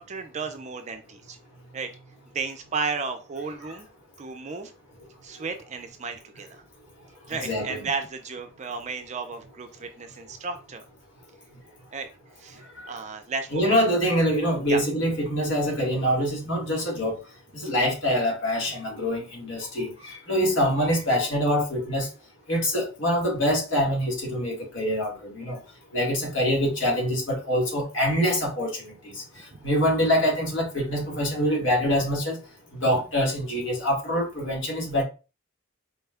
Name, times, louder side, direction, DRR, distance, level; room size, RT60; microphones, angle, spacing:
voice 1, 0.0-1.4 1.7-1.9 2.3-3.9 4.2-4.7 5.2-6.6 7.3-10.8 11.9-12.1 12.4-13.8 14.6-14.8 29.5-29.6 32.9-33.0, right 4 dB, 35° right, 0.4 m, -33 dB
voice 2, 7.4-7.8 13.5-17.2 17.5-22.1 22.5-25.6 25.9-29.2 29.6-32.4 32.8-35.0, equal, 60° left, 1.4 m, -25 dB
4.3 x 2.2 x 3.4 m
head